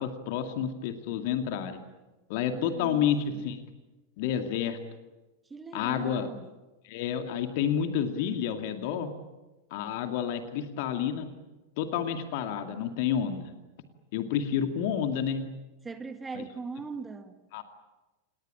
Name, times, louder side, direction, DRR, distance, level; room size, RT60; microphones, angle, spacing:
voice 1, 0.0-1.8 2.3-3.6 4.2-4.8 5.7-6.3 6.8-9.1 9.7-11.3 11.8-13.5 14.1-15.5 16.3-16.4 17.5-17.6, left 8 dB, 50° left, 7 dB, 2.3 m, -29 dB
voice 2, 2.6-3.4 5.5-6.5 15.8-17.5, right 4 dB, 15° right, 9 dB, 1.9 m, -40 dB
28.0 x 20.0 x 8.8 m, 1.1 s
figure-of-eight pair, 90°, 0 cm